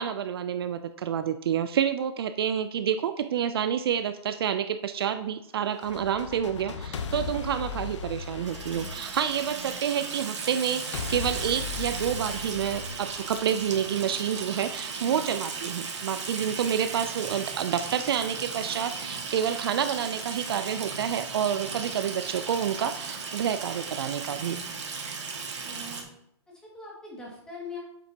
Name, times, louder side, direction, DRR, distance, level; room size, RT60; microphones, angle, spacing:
voice 1, 0.0-24.6, right 9 dB, 55° right, 11 dB, 0.4 m, -29 dB
sound 1, 5.7-9.8 10.9-13.8, left 5 dB, 90° left, 0.8 m, -37 dB
Water tap faucet / Sink (filling or washing), 8.1-26.0, right 5 dB, 85° right, 1.7 m, -36 dB
voice 2, 15.0-15.3 25.6-26.1 26.5-27.8, left 3 dB, 5° left, -4 dB, 1.9 m, -43 dB
8.4 x 7.5 x 2.8 m, 0.77 s
hypercardioid pair, 165°, 15 cm